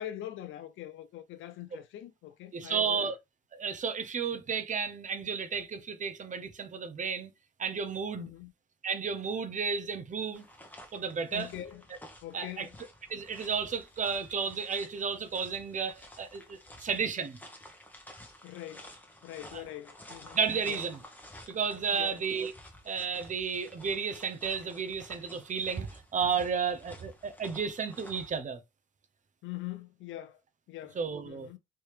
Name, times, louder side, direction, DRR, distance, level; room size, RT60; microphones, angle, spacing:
voice 1, 0.0-3.1 8.2-8.5 11.3-11.8 12.2-12.8 18.4-18.9 19.2-20.4 20.6-20.8 21.9-22.2 29.4-30.4 30.7-31.0 31.3-31.6, left 13 dB, 75° left, 0.5 m, -43 dB
voice 2, 2.5-3.1 3.5-7.3 7.6-8.3 8.8-10.4 10.9-11.5 12.3-12.7 13.1-17.4 20.3-21.0 21.5-22.5 22.9-28.6 31.0-31.5, right 6 dB, 40° right, 0.7 m, -32 dB
sound 1, 10.3-28.4, left 1 dB, 10° left, 1.0 m, -52 dB
3.3 x 2.7 x 3.2 m
cardioid pair, 90°, 20 cm